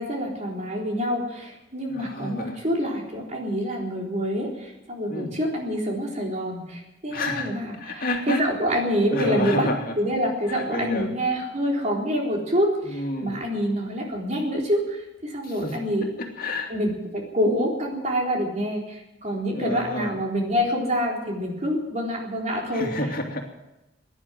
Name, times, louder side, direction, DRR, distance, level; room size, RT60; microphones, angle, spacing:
voice 1, 0.0-9.7 10.0-16.1 16.7-22.9, equal, 40° right, -1 dB, 3.9 m, -26 dB
voice 2, 1.9-2.6 5.1-5.3 7.1-7.5 7.8-8.5 9.1-9.9 10.5-11.1 12.8-13.4 15.4-15.8 16.2-16.7 19.5-20.2 22.7-23.4, left 2 dB, 50° left, 1 dB, 2.6 m, -30 dB
17.0 x 10.5 x 7.7 m, 0.97 s
head